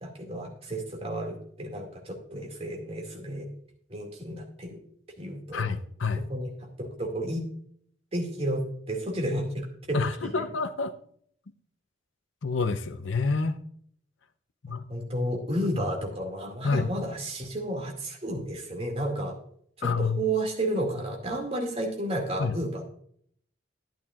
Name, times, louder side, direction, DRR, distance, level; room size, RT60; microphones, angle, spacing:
voice 1, 0.0-3.5 3.9-4.8 5.2-5.7 6.3-6.5 6.8-7.4 8.1-10.3 14.9-19.4 19.8-22.8, right 1 dB, 30° right, 1 dB, 2.3 m, -32 dB
voice 2, 5.5-6.3 9.9-10.9 12.4-13.6 14.6-14.8 16.6-16.9 19.8-20.3 22.4-22.6, left 4 dB, 80° left, 10 dB, 0.6 m, -28 dB
12.0 x 10.5 x 2.4 m, 0.63 s
head